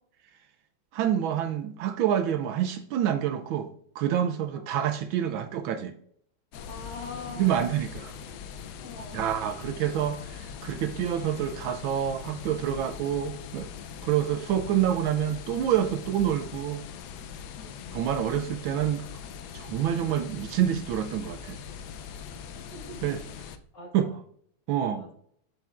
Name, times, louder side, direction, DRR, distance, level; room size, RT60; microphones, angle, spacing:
voice 1, 0.9-3.7 3.9-5.9 7.4-8.1 9.1-13.7 14.0-16.8 17.9-19.0 19.5-21.6 23.0-23.2 23.9-24.1 24.7-25.1, right 10 dB, 75° right, 8 dB, 1.2 m, -27 dB
sound 1, 6.5-23.6, left 7 dB, 85° left, 0.9 m, -41 dB
voice 2, 6.7-7.8 8.8-9.3 14.3-14.5 17.5-18.4 22.7-23.1 23.4-24.2 24.7-25.1, left 3 dB, 55° left, -1 dB, 2.3 m, -44 dB
7.6 x 6.9 x 2.4 m, 0.64 s
omnidirectional pair, 2.4 m